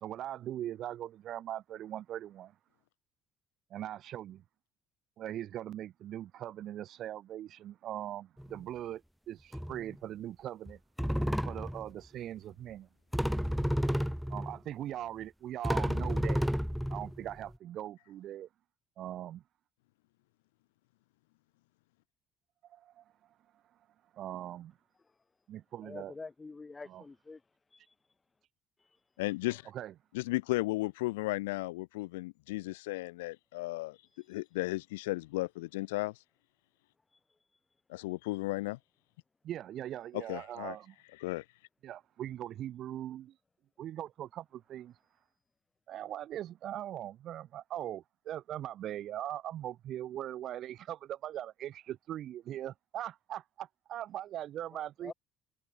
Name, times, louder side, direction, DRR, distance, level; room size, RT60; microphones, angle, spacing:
voice 1, 0.0-2.5 3.7-4.4 5.2-9.0 9.3-10.8 11.5-12.9 14.3-16.5 16.9-18.5 19.0-19.4 22.7-23.0 24.1-24.7 25.5-26.1 26.9-27.0 29.7-29.9 39.4-40.9 41.8-43.3 43.8-44.9 45.9-55.1, right 12 dB, 55° right, 0.7 m, -40 dB
sound 1, 8.4-8.6 9.5-9.9 10.7-10.8 11.0-11.9 13.1-14.6 15.2-15.3 15.6-17.5, equal, ahead, 0.3 m, -31 dB
voice 2, 25.8-27.4 27.7-27.8 54.7-55.1, left 3 dB, 25° left, 6.7 m, -46 dB
voice 3, 29.2-29.7 30.1-34.0 34.3-36.2 37.9-38.8 40.1-40.8 41.2-41.5, left 21 dB, 70° left, 0.7 m, -35 dB
figure-of-eight pair, 50°, 0 cm